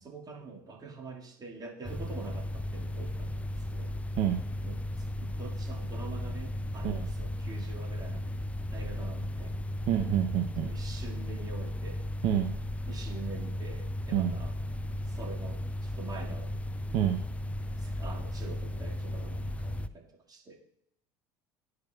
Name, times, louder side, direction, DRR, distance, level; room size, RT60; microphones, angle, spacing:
voice 1, 0.0-4.0 4.6-8.3 8.7-9.6 10.6-12.1 12.9-14.5 15.0-16.6 17.8-20.5, right 4 dB, 30° right, -1 dB, 2.0 m, -45 dB
sound 1, 1.8-19.9, left 1 dB, 10° left, 0.4 m, -35 dB
voice 2, 9.9-10.7 12.2-12.5 14.1-14.4 16.9-17.2, right 11 dB, 55° right, 3 dB, 0.7 m, -27 dB
12.0 x 4.9 x 2.3 m, 0.73 s
hypercardioid pair, 75°, 12 cm